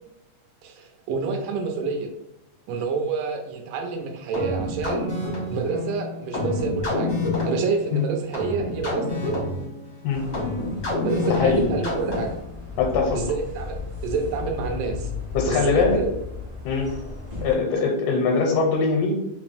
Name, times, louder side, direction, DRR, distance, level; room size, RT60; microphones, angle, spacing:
voice 1, 0.6-2.1 2.7-5.1 5.5-7.1 7.4-9.4 11.0-12.3 13.1-15.1 15.5-16.1, right 4 dB, 85° right, 3 dB, 2.2 m, -28 dB
sound 1, 4.3-12.5, left 2 dB, 65° left, 0.8 m, -28 dB
sound 2, 10.1-17.5, left 4 dB, 55° right, 0.5 m, -35 dB
voice 2, 12.8-13.2 15.3-16.0 16.7-16.9 17.4-19.1, left 4 dB, 85° left, 0 dB, 2.1 m, -22 dB
5.0 x 2.0 x 3.4 m, 0.88 s
omnidirectional pair, 3.8 m